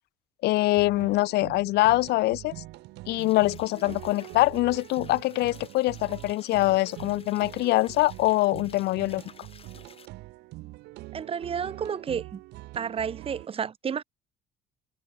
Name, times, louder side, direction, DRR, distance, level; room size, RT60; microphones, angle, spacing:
voice 1, 0.4-2.5 3.1-9.2, left 18 dB, 75° left, 0.5 m, -24 dB
sound 1, 0.5-13.5, right 20 dB, 90° right, 2.9 m, -44 dB
sound 2, 3.2-10.1, left 6 dB, 35° left, 3.8 m, -53 dB
voice 2, 11.1-12.4 12.8-14.0, right 7 dB, 35° right, 0.8 m, -31 dB
cardioid pair, 110°, 17 cm